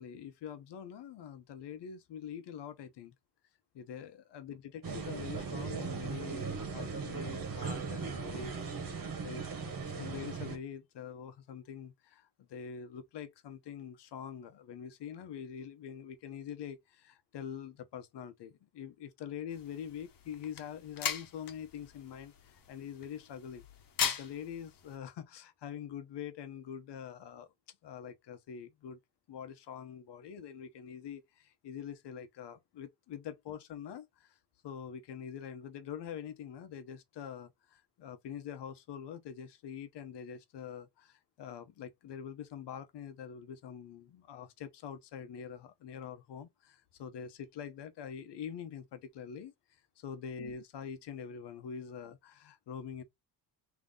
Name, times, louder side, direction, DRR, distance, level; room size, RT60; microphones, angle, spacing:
voice 1, 0.0-3.1 3.7-23.6 24.0-29.0 29.3-34.4 34.6-53.0, left 8 dB, 90° left, 0.8 m, -45 dB
sound 1, 4.8-10.6, right 5 dB, 55° right, 1.5 m, -38 dB
sound 2, 19.5-25.0, left 7 dB, 55° left, 1.1 m, -40 dB
3.7 x 2.9 x 3.8 m
cardioid pair, 110°, 41 cm